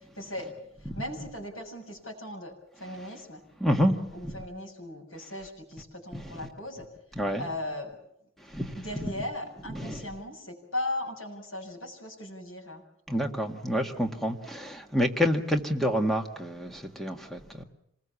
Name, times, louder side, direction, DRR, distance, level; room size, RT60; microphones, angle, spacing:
voice 1, 0.2-0.5 0.8-3.4 4.1-6.9 7.4-8.0 8.8-12.8, left 1 dB, 75° left, 7.2 m, -38 dB
voice 2, 3.6-4.0 4.2-4.3 6.1-6.2 7.2-7.5 8.5-9.1 9.7-10.0 13.1-17.6, equal, ahead, 1.8 m, -28 dB
26.5 x 20.5 x 7.2 m
head